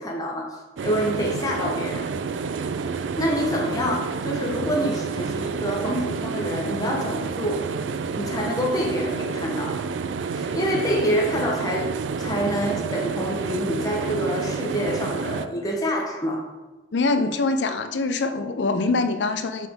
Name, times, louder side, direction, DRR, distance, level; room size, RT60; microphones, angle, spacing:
voice 1, 0.0-2.1 2.9-7.6 8.2-9.8 10.3-11.9 12.2-16.4, equal, 20° left, -1 dB, 0.9 m, -27 dB
sound 1, 0.8-15.5, right 5 dB, 90° right, 0.4 m, -29 dB
voice 2, 16.9-19.7, left 3 dB, 75° left, 10 dB, 0.6 m, -24 dB
7.5 x 5.1 x 3.6 m, 1.1 s
head